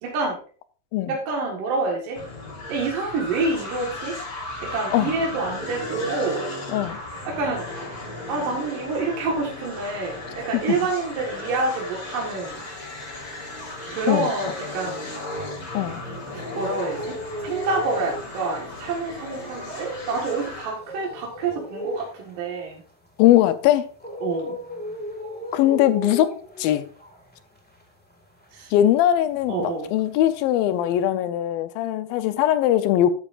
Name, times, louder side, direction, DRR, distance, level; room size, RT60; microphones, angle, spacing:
voice 1, 0.0-0.4 1.1-2.2 2.7-4.2 4.6-6.4 7.2-7.7 8.3-12.6 13.9-15.1 16.3-17.2 17.4-22.8 24.2-24.6 28.5-28.7 29.5-29.9, right 3 dB, 70° right, 3.2 m, -27 dB
sound 1, 2.1-20.8, left 1 dB, 35° left, 3.6 m, -35 dB
sound 2, 12.7-15.9 16.3-29.7 30.0-31.0, equal, 15° left, 0.3 m, -37 dB
voice 2, 23.2-23.9 25.5-26.8 28.7-33.1, left 12 dB, 85° left, 2.5 m, -20 dB
12.5 x 8.9 x 2.5 m
omnidirectional pair, 4.1 m